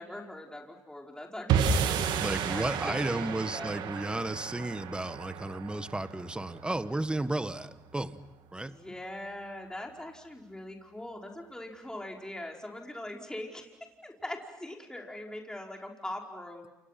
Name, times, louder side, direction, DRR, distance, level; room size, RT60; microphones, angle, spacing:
voice 1, 0.0-3.7 8.6-13.7 14.0-16.7, left 1 dB, 10° left, 0 dB, 4.9 m, -42 dB
sound 1, 1.5-7.9, right 6 dB, 75° right, 2.0 m, -32 dB
voice 2, 2.2-8.2 8.5-8.8, right 2 dB, 10° right, 12 dB, 1.4 m, -33 dB
29.0 x 28.0 x 6.0 m, 0.99 s
supercardioid pair, 65°, 8 cm